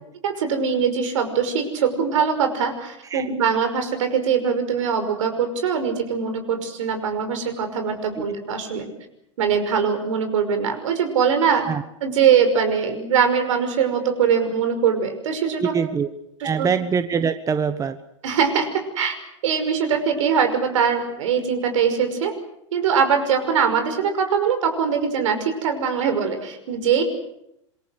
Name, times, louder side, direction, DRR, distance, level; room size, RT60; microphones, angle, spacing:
voice 1, 0.2-8.9 9.4-11.6 12.0-15.7 16.6-16.7 18.2-19.1 19.4-22.3 22.7-27.0, right 7 dB, 70° right, 7 dB, 5.7 m, -22 dB
voice 2, 15.6-16.1 16.4-18.0, right 6 dB, 20° right, 10 dB, 1.3 m, -23 dB
26.5 x 23.0 x 6.6 m, 0.80 s
hypercardioid pair, 105°, 17 cm